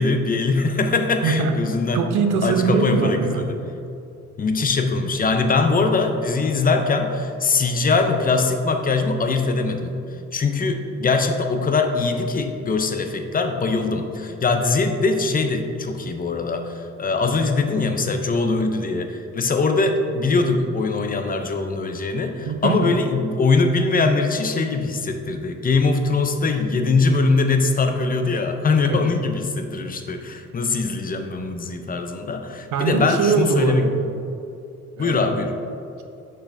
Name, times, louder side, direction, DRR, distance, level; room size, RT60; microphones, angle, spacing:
voice 1, 0.0-2.0 2.4-3.5 4.4-9.9 10.3-33.8 35.0-35.5, left 3 dB, 30° left, 6 dB, 0.6 m, -22 dB
voice 2, 1.2-1.5 1.9-3.5 22.5-23.0 28.9-29.1 32.7-34.1 35.0-35.2, right 5 dB, 85° right, 6 dB, 0.7 m, -22 dB
6.4 x 5.9 x 2.6 m, 2.6 s
cardioid pair, 90°, 30 cm